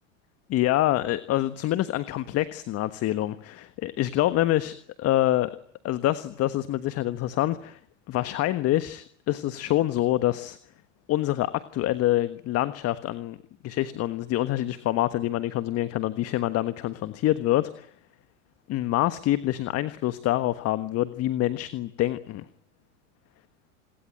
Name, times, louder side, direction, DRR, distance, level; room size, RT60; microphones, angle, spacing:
voice 1, 0.5-5.5 5.8-7.8 8.1-10.6 11.1-13.4 13.6-17.9 18.7-22.4, left 14 dB, 40° left, 13 dB, 1.4 m, -26 dB
27.5 x 22.0 x 9.1 m, 0.63 s
hypercardioid pair, 90°, 37 cm